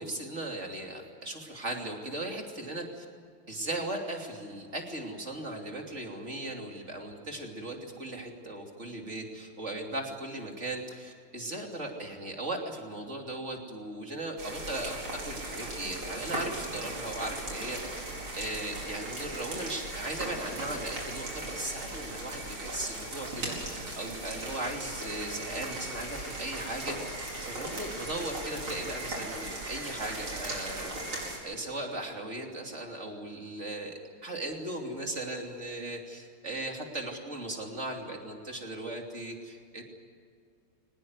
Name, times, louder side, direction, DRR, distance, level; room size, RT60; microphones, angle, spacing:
voice 1, 0.0-3.0 3.5-14.9 15.3-18.0 18.4-27.2 27.4-31.1 31.4-39.8, right 1 dB, 35° right, 2 dB, 3.2 m, -38 dB
sound 1, 14.4-31.4, right 2 dB, 80° right, 5.8 m, -38 dB
23.5 x 20.0 x 9.6 m, 2.2 s
omnidirectional pair, 2.3 m